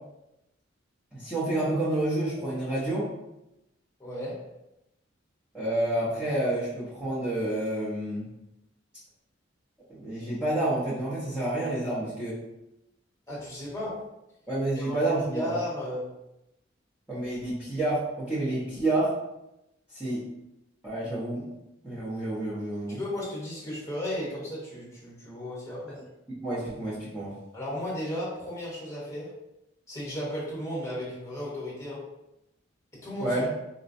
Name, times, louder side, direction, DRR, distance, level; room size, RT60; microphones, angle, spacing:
voice 1, 1.1-3.1 5.5-8.3 9.9-12.4 14.5-15.5 17.1-19.1 19.9-20.2 20.8-21.4 21.8-23.0 26.4-27.3 33.2-33.5, right 1 dB, 5° right, -11 dB, 0.7 m, -29 dB
voice 2, 4.0-4.5 13.3-14.0 14.8-15.0 15.3-16.2 22.9-26.0 27.5-29.3 29.9-32.1 32.9-33.4, left 1 dB, 15° left, -7 dB, 1.0 m, -34 dB
4.0 x 2.2 x 2.6 m, 0.90 s
head